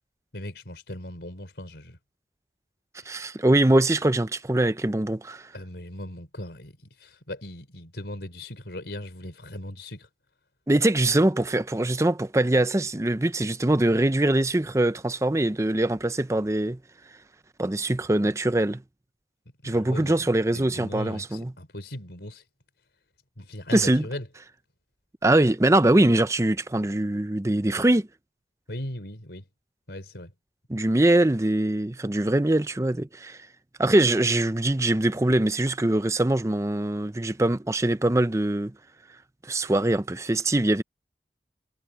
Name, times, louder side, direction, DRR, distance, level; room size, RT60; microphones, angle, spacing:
voice 1, 0.3-2.0 5.5-10.1 19.6-22.4 23.4-24.3 28.7-29.4 29.9-30.3, left 1 dB, 75° left, 3.8 m, -38 dB
voice 2, 3.1-5.5 10.7-16.8 17.6-18.8 19.6-21.5 23.7-24.1 25.2-28.1 30.7-33.4 33.8-38.7 39.4-40.8, right 1 dB, 15° right, 0.6 m, -23 dB
head